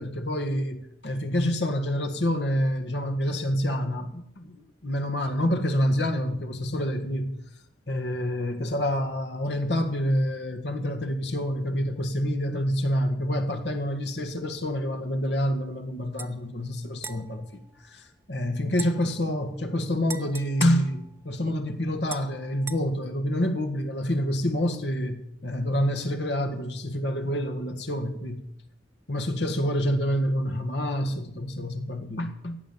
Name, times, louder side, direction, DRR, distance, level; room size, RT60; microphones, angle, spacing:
voice 1, 0.0-7.4 7.9-17.5 17.8-28.4 29.1-32.6, equal, 80° left, 1.8 m, -27 dB
sound 1, 16.2-16.3 17.0-18.3 18.7-21.6 22.1-22.8, right 5 dB, 15° right, 0.6 m, -42 dB
15.5 x 9.4 x 7.2 m
head